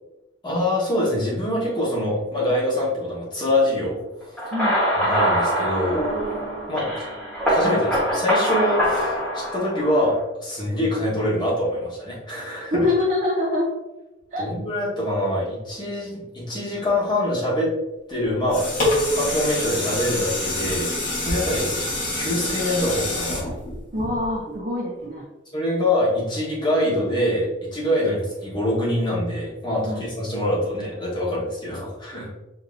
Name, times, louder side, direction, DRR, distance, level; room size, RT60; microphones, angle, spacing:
voice 1, 0.4-4.0 4.3-4.4 5.0-6.0 6.7-6.9 7.5-12.9 14.4-17.7 18.1-18.6 19.1-21.7 22.1-23.6 25.5-32.4, left 1 dB, 20° left, -7 dB, 1.3 m, -24 dB
sound 1, 4.4-10.2, equal, 5° left, 1.3 m, -23 dB
voice 2, 12.7-13.7 14.3-14.5 23.9-25.3 29.8-30.0, left 2 dB, 40° right, -5 dB, 0.7 m, -24 dB
sound 2, 18.2-24.5 25.0-25.1, left 1 dB, 40° left, 1.4 m, -26 dB
5.3 x 2.8 x 2.6 m, 1.0 s
head